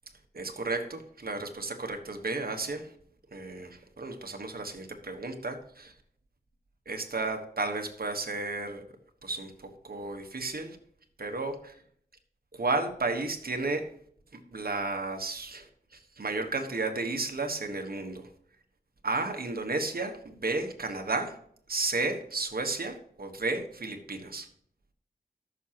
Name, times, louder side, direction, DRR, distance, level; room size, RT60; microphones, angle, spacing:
voice 1, 0.3-2.9 3.3-5.9 6.9-8.8 9.2-9.5 9.8-10.8 11.2-11.7 12.5-13.9 14.3-18.3 19.0-21.4 21.7-24.5, right 3 dB, 65° right, 5 dB, 1.3 m, -33 dB
13.5 x 6.1 x 2.9 m, 0.64 s
wide cardioid pair, 75°, 17 cm